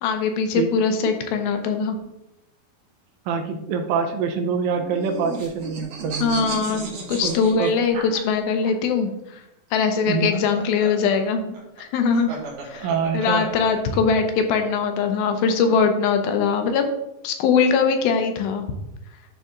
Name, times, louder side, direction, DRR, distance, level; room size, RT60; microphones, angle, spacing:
voice 1, 0.0-2.0 6.2-9.1 9.7-12.3 12.6-12.9 13.1-16.8 17.2-18.7, left 5 dB, 80° left, 6 dB, 2.5 m, -21 dB
voice 2, 3.3-6.4 7.2-7.7 10.1-10.3 12.8-13.5, right 5 dB, 75° right, 5 dB, 2.3 m, -25 dB
sound 1, 4.7-8.7 10.0-14.2, right 3 dB, 55° right, 2.9 m, -35 dB
12.0 x 4.2 x 3.8 m, 0.88 s
omnidirectional pair, 4.4 m